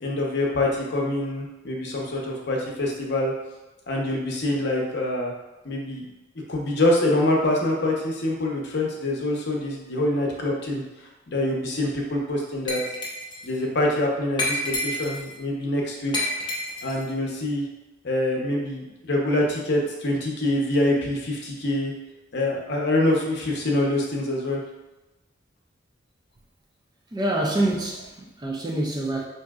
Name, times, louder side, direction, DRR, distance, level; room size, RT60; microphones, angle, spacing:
voice 1, 0.0-3.3 3.9-5.3 5.6-6.0 6.5-10.8 11.3-12.8 13.4-16.1 16.8-17.6 18.0-21.9 22.3-24.6, left 1 dB, 60° left, -1 dB, 0.7 m, -25 dB
Glass, 12.7-13.5 14.4-15.3 16.1-17.0, left 1 dB, 25° left, 0.6 m, -29 dB
voice 2, 27.1-29.3, right 1 dB, 20° right, -1 dB, 0.4 m, -26 dB
4.9 x 2.7 x 2.3 m, 1.1 s
head